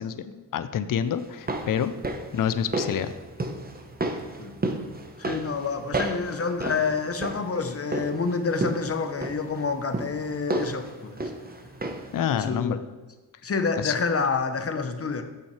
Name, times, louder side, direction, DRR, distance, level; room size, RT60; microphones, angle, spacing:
voice 1, 0.0-1.9 2.3-3.1 12.1-12.8 13.8-13.9, left 9 dB, 50° left, 13 dB, 0.6 m, -27 dB
sound 1, 1.2-12.2 12.5-12.6, right 2 dB, 20° right, 0.9 m, -33 dB
voice 2, 5.2-11.3 12.3-12.8 13.4-15.2, left 4 dB, 35° left, 8 dB, 0.9 m, -28 dB
8.5 x 6.3 x 3.3 m, 1.2 s
cardioid pair, 60°, 42 cm